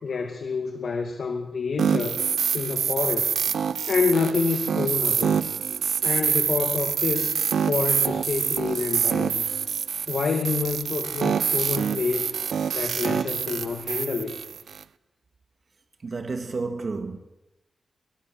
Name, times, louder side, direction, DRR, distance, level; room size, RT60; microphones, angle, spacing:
voice 1, 0.0-2.2 2.5-3.4 3.9-5.4 6.0-9.5 10.1-12.3 12.7-14.3, left 4 dB, 60° left, 2.2 m, -28 dB
sound 1, 1.8-14.8, right 7 dB, 85° right, 0.7 m, -26 dB
voice 2, 16.0-17.2, right 3 dB, 40° right, 1.8 m, -31 dB
23.5 x 19.0 x 7.7 m
wide cardioid pair, 155°, 0 cm